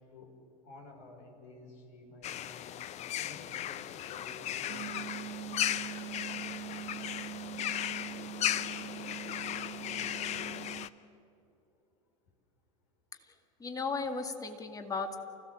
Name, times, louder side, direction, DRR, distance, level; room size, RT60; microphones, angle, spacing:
voice 1, 0.6-2.6 3.2-5.3, left 2 dB, 60° left, 1 dB, 5.5 m, -52 dB
sound 1, 2.2-10.9, left 11 dB, 35° left, 0.8 m, -36 dB
sound 2, 4.7-10.9, right 14 dB, 45° right, 1.5 m, -43 dB
voice 2, 13.6-15.2, left 4 dB, 20° left, 6 dB, 2.2 m, -36 dB
29.5 x 16.0 x 7.6 m, 2.7 s
figure-of-eight pair, 80°, 19 cm